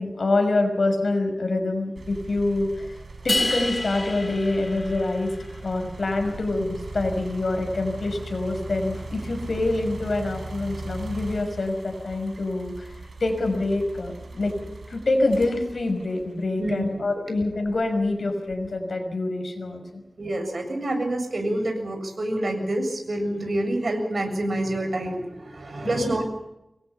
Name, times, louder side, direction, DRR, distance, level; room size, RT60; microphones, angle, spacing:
voice 1, 0.0-3.0 3.2-5.3 5.6-20.0 25.7-26.2, left 2 dB, 75° left, 6 dB, 5.8 m, -26 dB
sound 1, 2.0-17.0 17.6-18.8, right 3 dB, 80° right, 5.9 m, -39 dB
sound 2, 3.3-5.6, left 1 dB, 40° left, 6.3 m, -29 dB
voice 2, 16.6-17.0 20.2-26.2, right 1 dB, 65° right, 5 dB, 7.3 m, -27 dB
26.5 x 21.5 x 5.7 m, 0.88 s
wide cardioid pair, 75°, 0 cm